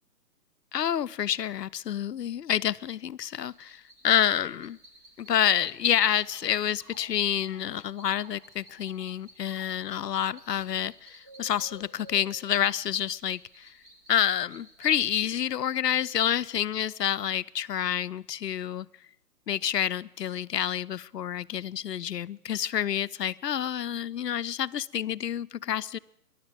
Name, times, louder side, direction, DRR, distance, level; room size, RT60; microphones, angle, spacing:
voice 1, 0.7-4.8 5.2-13.8 14.1-18.9 19.5-26.0, left 10 dB, 85° left, 16 dB, 0.6 m, -28 dB
sound 1, 3.3-15.0, equal, 10° right, 0.6 m, -54 dB
14.0 x 11.0 x 7.5 m, 0.79 s
figure-of-eight pair, 140°, 47 cm